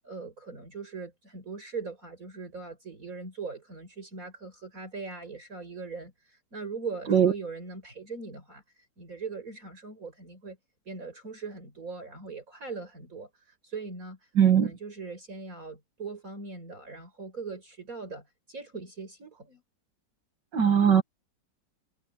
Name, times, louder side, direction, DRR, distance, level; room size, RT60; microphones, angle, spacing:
voice 1, 0.0-10.6 10.9-19.6, right 4 dB, 50° right, 5.5 m, -40 dB
voice 2, 14.4-14.7 20.5-21.0, right 8 dB, 75° right, 2.4 m, -20 dB
omnidirectional pair, 1.9 m